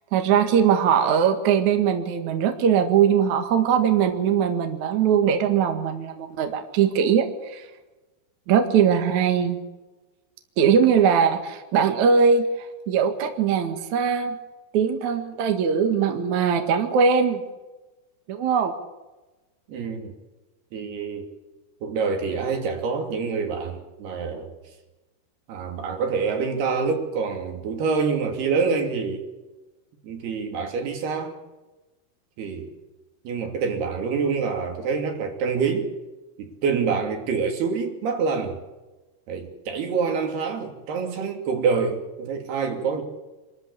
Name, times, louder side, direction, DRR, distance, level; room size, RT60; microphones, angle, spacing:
voice 1, 0.1-7.7 8.5-9.6 10.6-14.4 14.7-17.4 18.3-18.7, right 7 dB, 55° right, 6 dB, 2.8 m, -21 dB
voice 2, 19.7-20.1 20.7-21.3 21.8-24.5 25.5-29.3 30.0-31.3 32.4-32.7 33.2-35.9 36.4-38.6 39.3-43.0, right 5 dB, 80° right, 4 dB, 4.8 m, -26 dB
26.5 x 13.5 x 8.5 m, 1.1 s
omnidirectional pair, 4.5 m